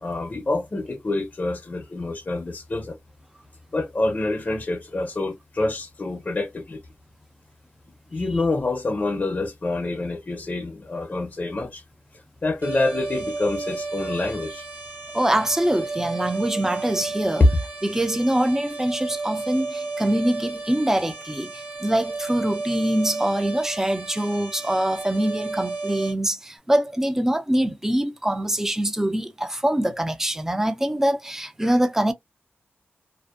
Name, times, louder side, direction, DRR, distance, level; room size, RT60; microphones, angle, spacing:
voice 1, 0.0-3.0 3.7-6.8 8.1-11.8 12.1-14.7 17.4-17.5, left 2 dB, 40° left, 0.5 m, -26 dB
sound 1, 12.6-26.1, right 3 dB, 50° right, 0.7 m, -33 dB
voice 2, 15.1-17.4 17.8-32.1, right 1 dB, 10° right, 0.4 m, -24 dB
2.5 x 2.1 x 2.4 m
wide cardioid pair, 90°, 4 cm